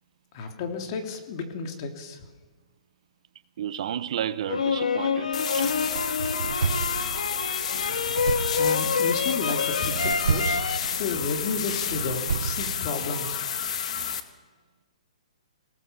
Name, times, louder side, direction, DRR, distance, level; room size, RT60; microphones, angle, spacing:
voice 1, 0.3-2.2 8.5-10.6 11.0-13.4, left 4 dB, 40° left, 3.0 m, -32 dB
voice 2, 3.6-5.8, right 10 dB, 55° right, 1.0 m, -32 dB
sound 1, 4.5-10.8, left 5 dB, 85° left, 2.0 m, -27 dB
sound 2, 5.3-14.2, left 8 dB, 60° left, 1.9 m, -31 dB
sound 3, 5.6-13.0, right 5 dB, 80° right, 0.8 m, -32 dB
24.0 x 18.0 x 7.2 m
hypercardioid pair, 145°, 4 cm